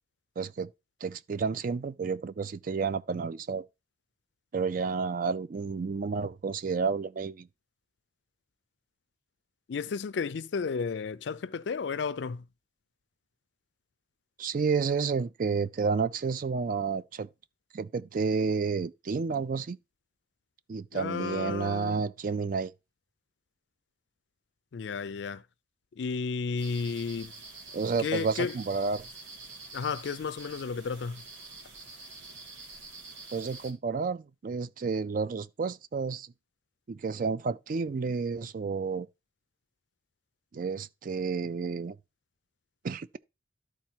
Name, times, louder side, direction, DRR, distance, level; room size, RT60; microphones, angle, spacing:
voice 1, 0.4-0.7 1.0-3.6 4.5-7.5 14.4-17.3 17.7-19.8 20.7-22.7 27.7-29.1 33.3-36.3 36.9-39.1 40.5-42.0 42.8-43.2, right 5 dB, 45° right, 0.4 m, -30 dB
voice 2, 9.7-12.4 20.9-22.0 24.7-25.4 26.0-27.3 28.0-28.5 29.7-31.2, left 5 dB, 70° left, 0.4 m, -33 dB
sound 1, 26.6-33.7, right 3 dB, 85° right, 2.2 m, -47 dB
12.0 x 4.1 x 4.5 m
head